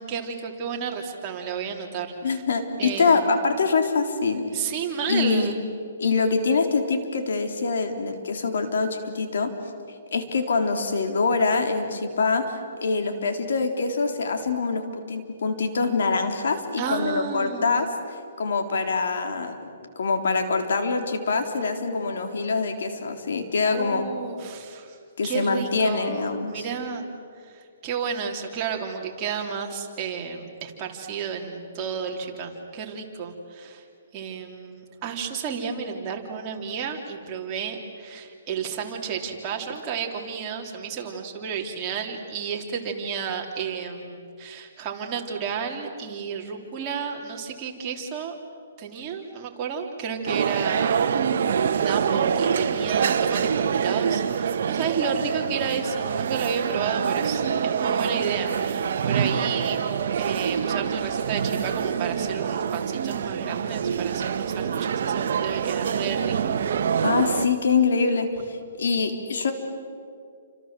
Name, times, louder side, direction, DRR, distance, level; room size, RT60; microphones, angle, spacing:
voice 1, 0.0-2.4 2.8-3.3 4.5-5.6 16.8-17.7 23.7-25.0 25.2-27.1 27.3-33.8 34.1-48.3 48.8-51.3 51.8-59.8 60.1-66.5, right 6 dB, 25° right, 0 dB, 3.3 m, -32 dB
voice 2, 2.2-4.5 5.1-5.5 6.0-9.5 10.1-17.9 18.4-24.0 25.2-26.7 67.0-69.5, left 4 dB, 75° left, 5 dB, 3.7 m, -24 dB
sound 1, 50.3-67.5, right 7 dB, 60° right, 1.4 m, -25 dB
29.5 x 26.5 x 7.7 m, 2.3 s
hypercardioid pair, 155°, 0 cm